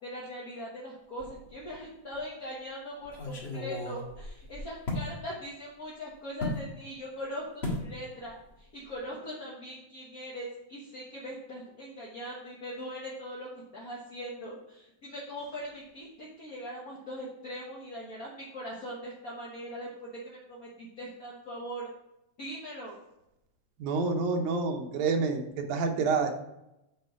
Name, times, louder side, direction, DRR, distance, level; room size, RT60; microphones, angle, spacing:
voice 1, 0.0-21.9 22.4-23.0, equal, 50° left, -5 dB, 1.0 m, -41 dB
sound 1, 1.2-1.8 2.1-2.2 3.0-5.1 6.4-6.6 7.6-7.9 8.2-8.5 8.8-9.0, left 2 dB, 30° left, 1.3 m, -35 dB
voice 2, 23.8-26.4, right 4 dB, 85° right, 3 dB, 2.4 m, -28 dB
8.2 x 4.3 x 4.8 m, 0.89 s
omnidirectional pair, 3.4 m